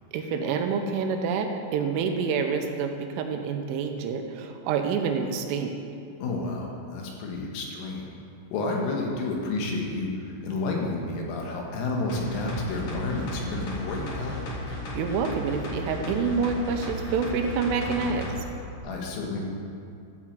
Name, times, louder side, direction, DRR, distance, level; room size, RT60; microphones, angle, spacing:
voice 1, 0.1-5.7 15.0-18.3, right 5 dB, 85° right, 5 dB, 3.3 m, -27 dB
voice 2, 6.2-8.1 8.5-14.4 18.8-19.4, left 2 dB, 80° left, -1 dB, 4.1 m, -30 dB
sound 1, 12.1-18.4 18.8-18.9, left 1 dB, 60° left, 1.8 m, -35 dB
12.5 x 6.1 x 7.3 m, 2.5 s
omnidirectional pair, 5.8 m